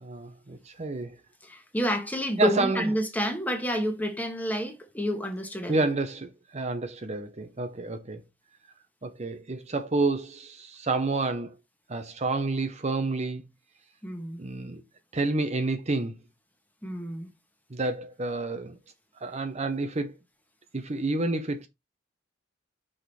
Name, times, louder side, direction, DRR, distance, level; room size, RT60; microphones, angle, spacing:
voice 1, 0.0-1.2 2.4-2.8 5.7-8.2 9.0-11.5 11.9-13.4 14.4-14.8 15.1-16.1 17.7-18.8 19.2-20.2 20.7-21.7, right 3 dB, 35° right, 0.7 m, -29 dB
voice 2, 1.4-5.8 14.0-14.4 16.8-17.3, equal, 10° left, 1.4 m, -29 dB
6.2 x 5.0 x 4.2 m
head